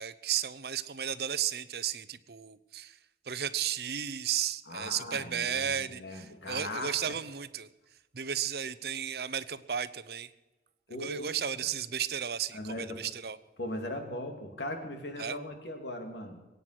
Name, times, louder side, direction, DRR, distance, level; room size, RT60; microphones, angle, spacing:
voice 1, 0.0-3.0 3.2-7.7 8.1-10.3 11.0-13.4 15.2-15.4, right 8 dB, 65° right, 15 dB, 0.7 m, -34 dB
voice 2, 4.7-7.0 10.9-11.2 11.6-11.7 12.5-13.0 13.6-16.5, left 1 dB, 85° left, 4 dB, 2.9 m, -39 dB
22.5 x 9.5 x 6.0 m, 1.1 s
head